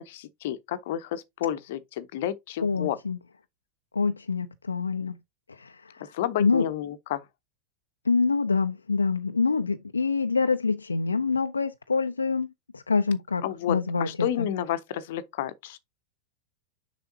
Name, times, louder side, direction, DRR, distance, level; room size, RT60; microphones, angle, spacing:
voice 1, 0.0-3.0 6.1-7.2 13.4-15.8, left 11 dB, 55° left, 0.7 m, -31 dB
voice 2, 2.6-3.2 3.9-5.2 5.5-6.1 6.4-6.7 8.1-12.5 12.7-14.1 14.4-14.5, left 4 dB, 75° left, 0.4 m, -26 dB
6.9 x 5.4 x 2.7 m
figure-of-eight pair, 90°, 0 cm